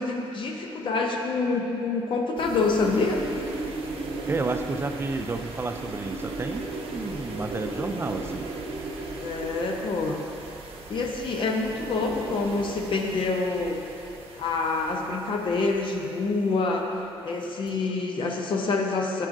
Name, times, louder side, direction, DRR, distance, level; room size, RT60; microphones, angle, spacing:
voice 1, 0.0-3.3 9.2-10.2 10.9-13.8 14.4-16.8 17.2-19.3, left 3 dB, 60° left, 1 dB, 0.7 m, -26 dB
sound 1, 2.4-16.2 17.4-17.7, right 2 dB, 75° right, 0.8 m, -36 dB
voice 2, 4.3-6.7 6.9-8.5, right 3 dB, 25° right, 7 dB, 0.3 m, -31 dB
8.3 x 6.1 x 2.6 m, 2.7 s
cardioid pair, 105°, 10 cm